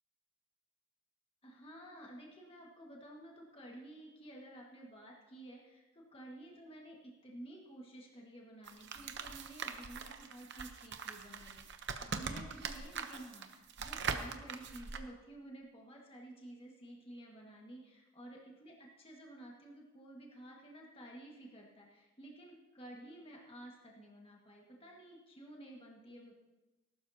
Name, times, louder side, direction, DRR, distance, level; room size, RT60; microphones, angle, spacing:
voice 1, 1.4-26.3, right 1 dB, 25° left, -2 dB, 1.7 m, -52 dB
sound 1, 8.6-15.0, right 5 dB, 50° right, 0.8 m, -42 dB
19.0 x 12.0 x 2.8 m, 1.1 s
head